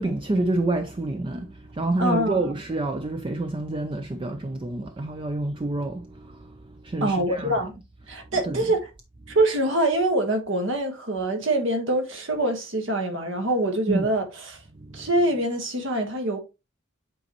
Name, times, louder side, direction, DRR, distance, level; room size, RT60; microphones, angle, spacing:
voice 1, 0.0-7.7 8.4-8.7 9.3-9.4 13.9-14.1 14.7-15.1, right 2 dB, 25° right, 0.5 m, -28 dB
voice 2, 2.0-2.5 7.0-7.7 8.1-8.8 9.3-14.6 14.9-16.4, right 1 dB, 65° right, 1.6 m, -24 dB
8.4 x 4.1 x 3.0 m
head